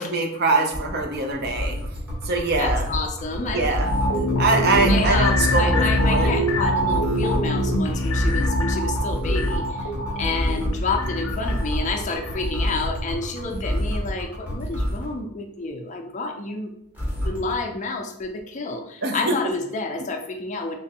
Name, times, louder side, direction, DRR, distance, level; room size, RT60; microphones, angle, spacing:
voice 1, 0.0-1.8 2.2-2.8 3.5-3.9 4.4-6.3 19.0-19.4, right 3 dB, 45° right, 3 dB, 0.5 m, -23 dB
sound 1, 0.7-15.1 16.9-17.5, equal, 10° right, 0.8 m, -27 dB
voice 2, 2.6-3.7 4.8-16.7 17.2-20.8, left 3 dB, 35° left, 3 dB, 0.4 m, -29 dB
sound 2, 3.8-13.1 13.5-13.6, equal, 80° left, 0.6 m, -24 dB
3.3 x 3.0 x 2.8 m, 0.71 s
head